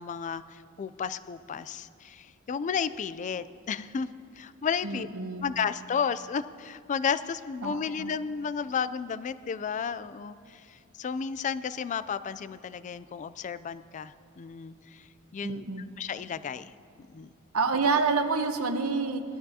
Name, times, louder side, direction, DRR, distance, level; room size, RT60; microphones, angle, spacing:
voice 1, 0.0-4.1 4.3-5.1 5.4-15.7 16.0-16.7 17.0-17.3, left 6 dB, 35° left, 14 dB, 0.3 m, -33 dB
voice 2, 4.8-5.5 7.6-8.1 15.4-15.8 17.5-19.2, right 4 dB, 80° right, 7 dB, 0.9 m, -28 dB
19.5 x 12.5 x 2.8 m, 2.4 s
head